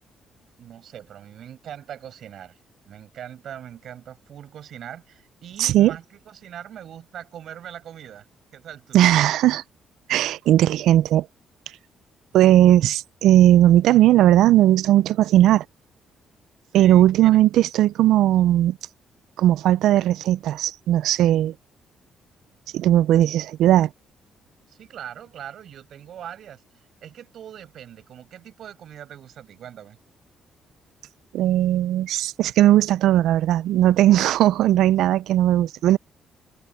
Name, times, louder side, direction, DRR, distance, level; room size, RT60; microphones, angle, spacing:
voice 1, 0.6-2.6 2.8-8.3 8.5-9.0 16.7-17.4 23.2-23.4 24.7-30.0, right 10 dB, 70° right, 6.5 m, -41 dB
voice 2, 5.6-5.9 8.9-9.6 10.1-11.3 12.3-15.6 16.7-18.8 19.4-21.5 22.7-23.9 31.3-36.0, right 13 dB, 85° right, 0.4 m, -17 dB
cardioid pair, 90°, 0 cm